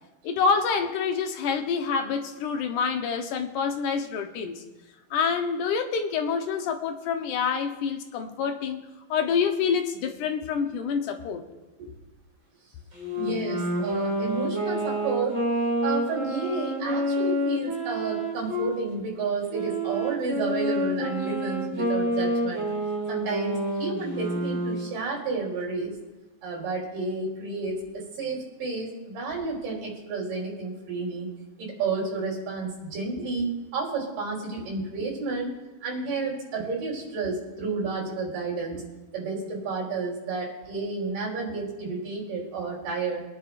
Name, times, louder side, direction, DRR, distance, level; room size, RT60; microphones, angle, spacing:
voice 1, 0.2-4.6 5.1-8.8 9.1-11.5, left 6 dB, 75° left, 5 dB, 2.4 m, -27 dB
Wind instrument woodwind instrument, 12.9-18.8 19.5-24.9, equal, 25° right, 3.2 m, -28 dB
voice 2, 13.2-15.4 15.8-22.7 23.1-26.0 26.4-31.3 31.6-35.5 35.8-38.8 39.1-43.2, right 4 dB, 80° right, -3 dB, 5.1 m, -31 dB
25.5 x 10.0 x 2.5 m, 1.1 s
omnidirectional pair, 3.8 m